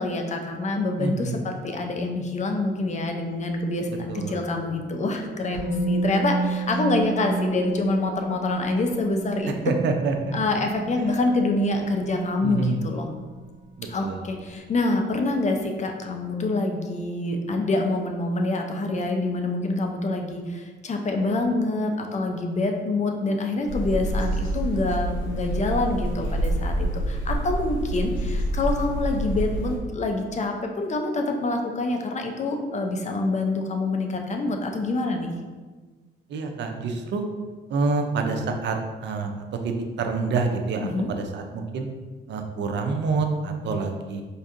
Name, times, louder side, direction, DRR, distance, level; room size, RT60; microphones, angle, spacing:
voice 1, 0.0-9.5 10.3-13.1 13.9-35.3 40.8-41.1, left 2 dB, 35° left, 3 dB, 0.5 m, -26 dB
voice 2, 1.0-1.4 4.1-4.4 9.6-10.4 11.0-11.1 12.4-12.8 13.8-14.2 36.3-37.3 37.7-38.8 39.0-39.3 39.6-41.9 42.3-44.2, right 4 dB, 65° right, 4 dB, 0.5 m, -27 dB
Musical instrument, 5.5-13.4 13.7-13.9, right 3 dB, 60° left, 1.4 m, -31 dB
sound 1, 23.6-29.8, right 1 dB, 75° left, 1.1 m, -27 dB
4.4 x 2.7 x 2.5 m, 1.4 s
cardioid pair, 90°, 20 cm